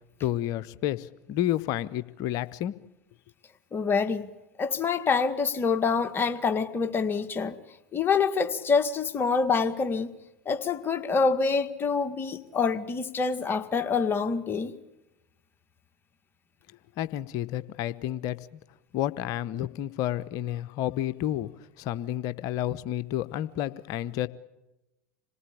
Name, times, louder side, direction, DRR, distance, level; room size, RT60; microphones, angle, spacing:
voice 1, 0.2-2.7 17.0-18.6 18.9-21.5 21.8-24.3, left 12 dB, 50° left, 16 dB, 0.9 m, -30 dB
voice 2, 3.7-4.3 4.6-7.6 7.9-10.1 10.5-14.8, left 5 dB, 25° left, 9 dB, 1.9 m, -26 dB
27.0 x 18.5 x 8.7 m, 0.98 s
figure-of-eight pair, 75°, 8 cm